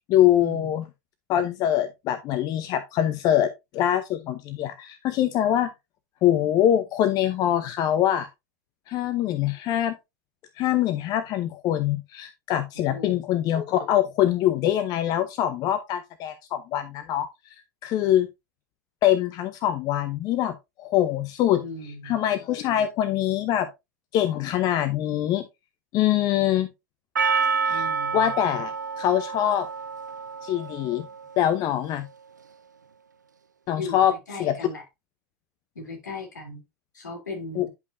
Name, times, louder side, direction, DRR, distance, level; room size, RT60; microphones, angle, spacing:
voice 1, 0.1-0.8 1.3-5.7 6.2-8.3 8.9-10.0 10.6-17.3 17.8-18.3 19.0-23.7 24.1-25.5 25.9-26.7 27.7-27.9 28.1-29.7 30.4-31.1 31.4-32.1 33.7-34.1 34.4-34.5 37.6-37.7, left 11 dB, 45° left, 0.8 m, -24 dB
voice 2, 12.7-13.2 21.6-22.1 27.7-28.3 33.8-34.8 35.7-36.6 36.9-37.7, left 2 dB, 80° left, 3.3 m, -37 dB
Percussion, 27.2-31.5, right 5 dB, 90° right, 0.4 m, -28 dB
10.5 x 5.3 x 2.7 m
figure-of-eight pair, 85°, 9 cm